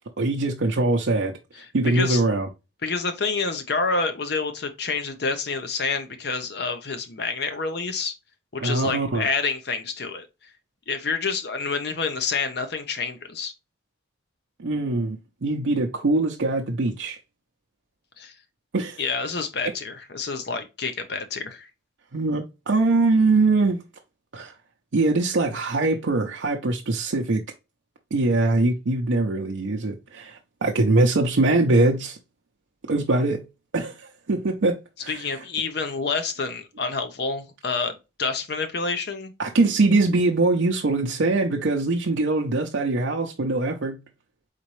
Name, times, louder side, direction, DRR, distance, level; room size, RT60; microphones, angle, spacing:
voice 1, 0.2-2.5 8.6-9.3 14.6-17.2 18.7-19.0 22.1-23.8 24.3-24.5 24.9-27.4 28.1-32.2 32.9-33.5 33.7-35.2 39.4-44.0, right 2 dB, 75° right, 0.6 m, -22 dB
voice 2, 1.9-2.2 2.8-8.1 8.5-10.3 10.9-13.5 18.2-18.3 19.0-21.7 35.1-39.3, left 4 dB, 60° left, 0.8 m, -28 dB
4.2 x 4.1 x 3.1 m
head